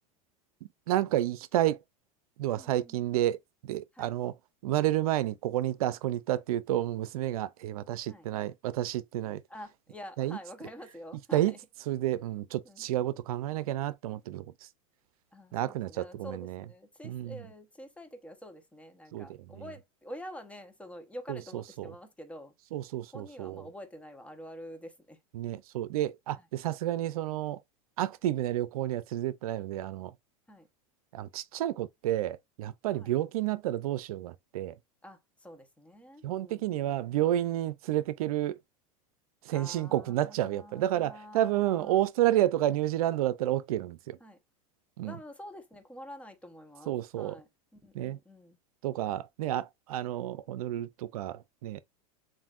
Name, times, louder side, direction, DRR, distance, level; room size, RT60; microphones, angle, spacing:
voice 1, 0.9-1.8 2.4-3.4 3.6-4.3 4.6-9.4 10.2-10.4 11.3-11.5 11.9-14.5 15.5-16.6 17.0-17.4 19.1-19.3 22.7-23.6 25.3-27.6 28.0-30.1 31.1-34.7 36.2-38.6 39.5-44.2 45.0-45.1 46.9-47.4 47.9-48.2 48.8-51.8, right 13 dB, 80° right, 0.5 m, -30 dB
voice 2, 2.5-3.1 3.9-4.2 8.0-8.3 9.5-11.6 12.6-12.9 15.3-22.5 23.1-25.2 26.3-26.5 30.5-30.7 32.9-33.1 35.0-37.6 39.5-42.0 44.2-44.4 45.0-48.6, equal, 5° left, 1.0 m, -47 dB
7.2 x 2.6 x 2.5 m
supercardioid pair, 120°, 18 cm